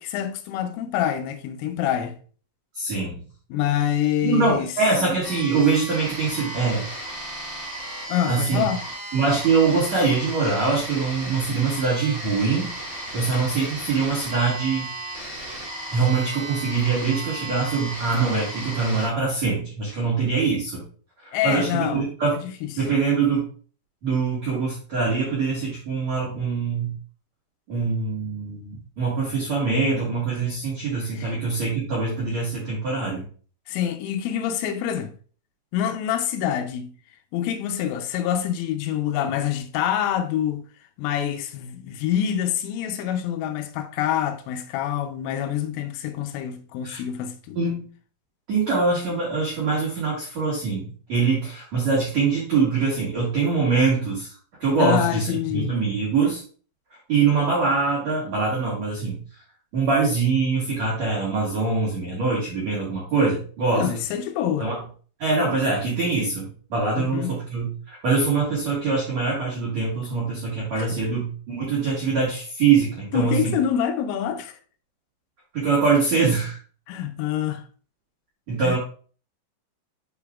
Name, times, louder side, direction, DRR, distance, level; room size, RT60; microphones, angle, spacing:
voice 1, 0.0-2.2 3.5-4.7 8.1-8.8 21.3-22.1 22.3-22.9 31.1-31.4 33.7-35.2 35.7-36.9 37.3-40.6 41.0-47.6 54.8-55.7 63.7-64.7 67.0-67.4 70.8-70.9 73.1-74.6 76.9-77.6 78.6-78.8, left 10 dB, 85° left, 3.1 m, -26 dB
voice 2, 2.7-3.2 4.2-7.0 8.3-8.6 9.1-14.9 15.9-20.8 21.2-22.4 22.8-23.5 24.0-26.9 27.7-33.2 46.8-47.0 47.5-47.9 48.5-54.3 54.6-56.4 57.1-59.2 59.7-63.9 64.6-64.8 65.2-73.5 75.5-76.6 78.5-78.8, right 4 dB, 70° right, 1.6 m, -23 dB
sound 1, 5.2-19.1, right 1 dB, 20° right, 1.7 m, -35 dB
9.9 x 4.8 x 2.3 m
omnidirectional pair, 5.8 m